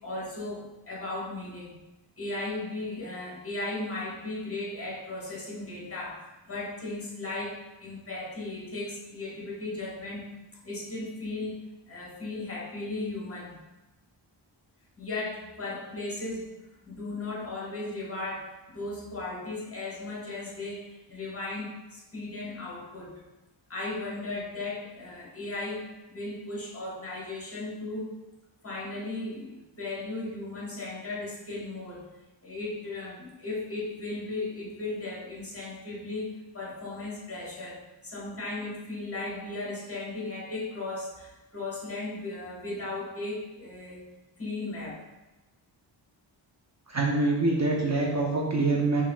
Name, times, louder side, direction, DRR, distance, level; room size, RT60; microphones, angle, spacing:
voice 1, 0.0-1.8 2.2-10.3 10.6-11.6 11.9-13.6 15.0-16.5 16.8-23.2 23.7-28.2 28.6-32.0 32.4-44.1 44.4-45.0, left 2 dB, 30° left, -5 dB, 1.1 m, -36 dB
voice 2, 46.9-49.0, right 2 dB, 35° right, -2 dB, 0.6 m, -25 dB
5.5 x 2.8 x 2.2 m, 1.0 s
wide cardioid pair, 85°, 48 cm